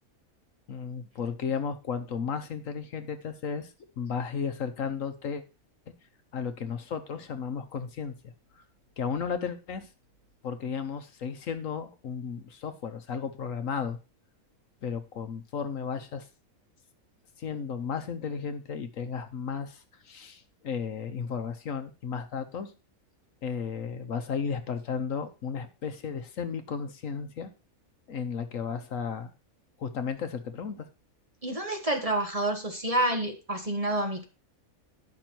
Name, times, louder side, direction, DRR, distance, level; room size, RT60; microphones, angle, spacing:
voice 1, 0.7-5.4 6.3-8.3 9.0-9.9 10.4-14.0 14.8-16.3 17.4-22.7 23.4-27.5 28.1-29.3 29.8-30.9, left 6 dB, 70° left, 9 dB, 1.2 m, -34 dB
voice 2, 31.4-34.2, right 1 dB, 25° right, 4 dB, 1.3 m, -28 dB
10.5 x 6.1 x 4.4 m, 0.31 s
omnidirectional pair, 1.5 m